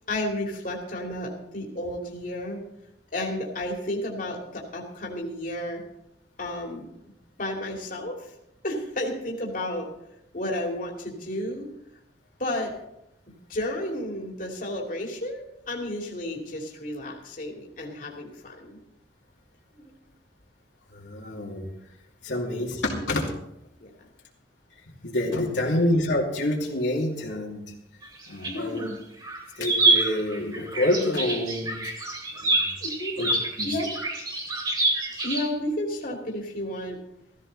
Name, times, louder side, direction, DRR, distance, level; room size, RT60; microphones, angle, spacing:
voice 1, 0.1-2.6 3.1-5.8 6.4-6.9 7.4-8.3 8.6-9.9 10.3-11.7 12.4-12.7 13.5-18.8 19.7-19.9 22.3-22.6 23.8-24.1 25.5-25.7 28.5-29.0 32.8-33.1 33.6-33.9 35.2-37.0, left 1 dB, 50° left, 0 dB, 2.7 m, -32 dB
voice 2, 20.9-21.7 22.2-23.3 25.0-27.6 28.3-28.9 29.6-31.9 32.4-32.7 33.2-33.3 33.6-33.7, left 1 dB, 75° left, -3 dB, 2.7 m, -27 dB
sound 1, 28.0-28.9 29.2-35.5, right 2 dB, 25° right, 3.4 m, -26 dB
15.5 x 15.0 x 4.1 m, 0.82 s
head